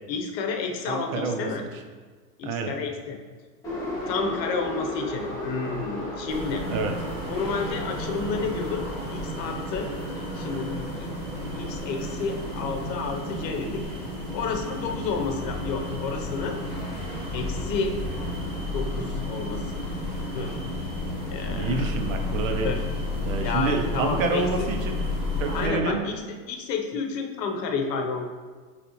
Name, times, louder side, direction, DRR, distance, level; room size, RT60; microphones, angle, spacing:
voice 1, 0.1-1.6 2.4-3.2 4.1-6.6 7.3-8.8 9.1-11.1 11.5-13.8 14.3-16.6 17.3-18.0 18.7-19.7 20.3-20.6 21.2-21.9 22.6-22.8 23.4-24.4 25.5-28.3, left 4 dB, 80° left, 4 dB, 0.8 m, -30 dB
voice 2, 0.9-1.5 2.4-2.7 6.7-7.0 21.5-22.7 23.2-25.0 25.4-26.1, right 4 dB, 55° right, 5 dB, 0.5 m, -28 dB
Subway metro underground, 3.6-23.5, left 1 dB, 5° left, 0.6 m, -39 dB
sound 1, 6.3-25.7, left 1 dB, 10° right, 1.4 m, -32 dB
5.1 x 3.3 x 2.9 m, 1.4 s
supercardioid pair, 155°, 49 cm